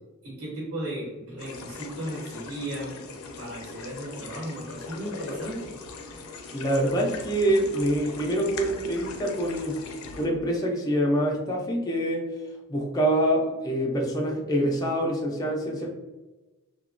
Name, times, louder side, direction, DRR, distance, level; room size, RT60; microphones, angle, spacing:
voice 1, 0.2-3.0 3.4-5.8, right 1 dB, 75° right, -5 dB, 1.2 m, -35 dB
sound 1, 1.4-10.3, left 4 dB, 85° left, 0.4 m, -40 dB
voice 2, 6.5-9.8 10.2-12.3 12.7-15.9, right 1 dB, 15° left, -1 dB, 0.4 m, -25 dB
2.9 x 2.2 x 2.4 m, 1.1 s
head